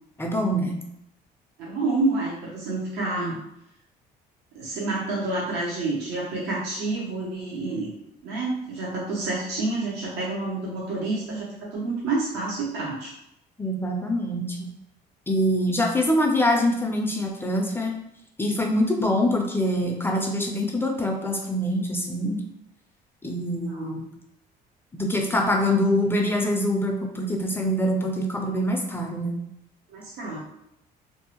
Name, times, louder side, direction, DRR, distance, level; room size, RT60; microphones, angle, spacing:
voice 1, 0.2-0.8 13.6-14.7 15.3-18.0 18.4-22.4 23.2-24.1 24.9-29.4, left 1 dB, 15° left, 1 dB, 0.3 m, -24 dB
voice 2, 1.6-3.4 4.5-7.9 8.2-13.1 23.7-24.0 29.9-30.4, right 2 dB, 85° right, -5 dB, 0.7 m, -28 dB
2.6 x 2.0 x 2.8 m, 0.79 s
cardioid pair, 110°, 17 cm